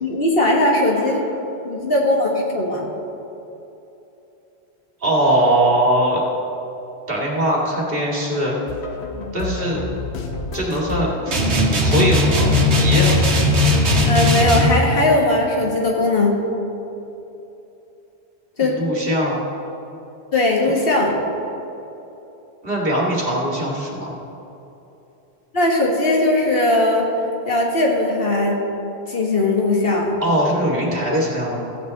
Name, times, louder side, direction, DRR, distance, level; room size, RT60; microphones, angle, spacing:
voice 1, 0.0-1.2 1.6-2.9 14.1-16.4 18.6-18.8 20.3-21.2 25.5-27.1 27.4-28.6 29.1-30.2, left 2 dB, 60° left, -1 dB, 1.6 m, -19 dB
voice 2, 5.0-6.2 7.1-8.5 9.3-9.8 10.5-13.1 18.6-19.4 22.6-24.1 30.2-31.8, right 1 dB, 60° right, -3 dB, 2.1 m, -21 dB
sound 1, 8.7-14.6, left 4 dB, 75° left, 1.1 m, -30 dB
sound 2, 11.3-14.8, left 1 dB, 90° right, 1.5 m, -17 dB
14.5 x 8.7 x 4.0 m, 3.0 s
omnidirectional pair, 1.1 m